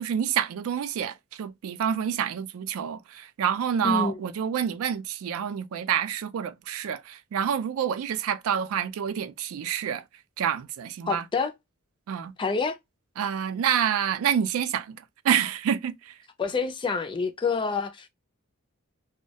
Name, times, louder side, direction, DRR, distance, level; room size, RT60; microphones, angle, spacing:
voice 1, 0.0-10.0 10.4-11.2 12.1-12.3 13.2-15.0 15.2-16.1, right 8 dB, 70° right, 0.3 m, -28 dB
voice 2, 3.8-4.2 11.1-11.5 12.4-12.8 16.4-18.1, left 4 dB, 20° left, 0.3 m, -27 dB
2.2 x 2.1 x 2.7 m
head